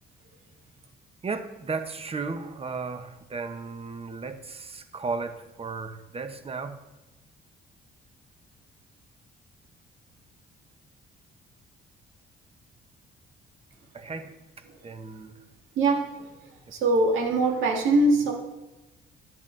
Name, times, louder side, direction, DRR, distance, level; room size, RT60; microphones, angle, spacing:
voice 1, 1.2-6.8 13.9-14.3 14.8-15.3, right 4 dB, 30° right, 9 dB, 0.9 m, -35 dB
voice 2, 15.8-16.3 16.7-18.3, right 2 dB, 90° right, 2 dB, 1.7 m, -22 dB
11.0 x 8.9 x 3.3 m, 1.1 s
cardioid pair, 90°, 20 cm